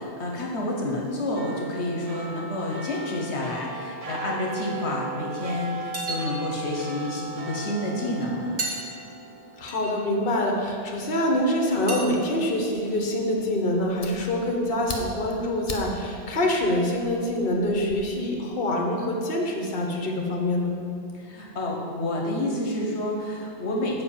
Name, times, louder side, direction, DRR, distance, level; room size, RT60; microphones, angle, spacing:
voice 1, 0.0-8.6 21.1-24.0, left 1 dB, 75° left, -1 dB, 1.3 m, -29 dB
sound 1, 1.4-12.1 12.5-12.6, right 3 dB, 40° right, 0.6 m, -38 dB
sound 2, 5.5-5.6 5.9-6.6 7.6-7.7 8.2-8.3 8.6-8.8 9.7-9.9 11.9-12.0, right 2 dB, 75° right, 1.6 m, -31 dB
voice 2, 9.6-20.7, left 1 dB, 55° left, 1 dB, 1.2 m, -25 dB
Fire, 13.4-18.0, left 3 dB, 35° left, 0.9 m, -41 dB
7.7 x 5.0 x 7.2 m, 2.5 s
omnidirectional pair, 1.2 m